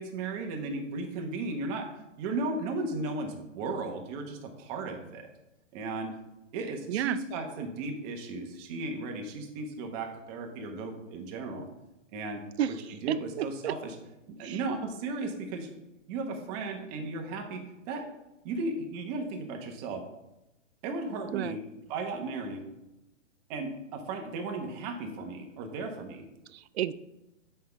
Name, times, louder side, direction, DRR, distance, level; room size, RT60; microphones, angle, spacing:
voice 1, 0.0-1.9 2.2-5.3 5.7-6.1 6.5-11.7 12.1-12.4 13.0-13.9 14.3-15.7 16.1-18.1 18.4-20.0 20.8-21.6 21.9-22.7 23.5-26.3, right 3 dB, 30° right, 3 dB, 1.2 m, -35 dB
voice 2, 6.9-7.2 12.6-12.7 13.1-13.7 14.4-14.6 21.3-21.6 26.5-26.9, right 11 dB, 55° right, 15 dB, 0.5 m, -31 dB
7.6 x 5.5 x 3.5 m, 0.95 s
hypercardioid pair, 135°, 38 cm